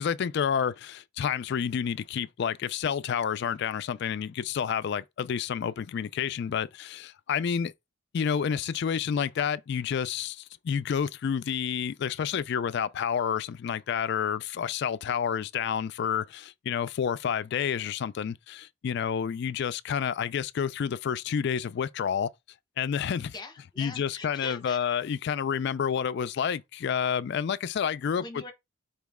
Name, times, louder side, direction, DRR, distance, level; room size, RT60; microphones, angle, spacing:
voice 1, 0.0-7.7 8.1-22.3 22.8-23.3 23.8-28.2, left 7 dB, 50° left, 0.3 m, -29 dB
voice 2, 23.3-24.8 28.2-28.5, left 3 dB, 20° left, 0.8 m, -42 dB
4.5 x 3.1 x 3.5 m
head